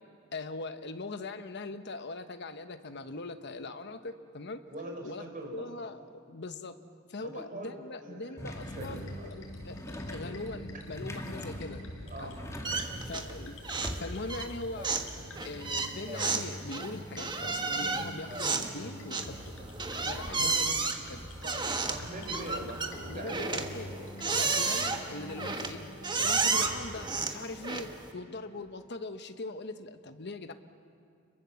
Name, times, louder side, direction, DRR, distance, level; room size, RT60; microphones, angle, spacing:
voice 1, 0.3-4.6 5.0-5.2 5.5-6.8 7.1-11.8 12.2-12.4 13.1-13.6 14.0-14.9 15.4-19.5 20.0-21.3 23.1-25.8 26.2-30.5, left 2 dB, 60° left, 9 dB, 1.2 m, -41 dB
voice 2, 4.7-5.6 7.3-8.9 9.1-9.3 12.1-12.4 20.3-20.6 21.4-21.6 21.9-23.7 24.2-24.4, right 1 dB, 40° right, 2 dB, 4.7 m, -42 dB
sound 1, 8.4-14.4, equal, 15° left, 2.1 m, -42 dB
sound 2, 8.6-27.2, left 1 dB, 75° left, 5.1 m, -46 dB
sound 3, 12.6-13.4 13.6-14.0 14.3-28.1, right 4 dB, 20° right, 1.4 m, -32 dB
30.0 x 23.0 x 7.2 m, 2.3 s
head